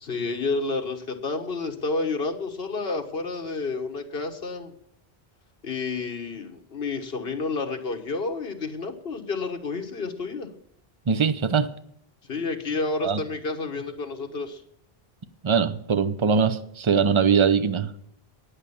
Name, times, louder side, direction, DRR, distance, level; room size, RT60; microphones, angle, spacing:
voice 1, 0.0-4.7 5.6-10.5 12.3-14.6, left 3 dB, 70° left, 1.6 m, -30 dB
voice 2, 11.1-11.7 13.0-13.2 15.4-17.9, right 6 dB, 35° right, 0.7 m, -22 dB
9.8 x 8.7 x 7.0 m
omnidirectional pair, 1.0 m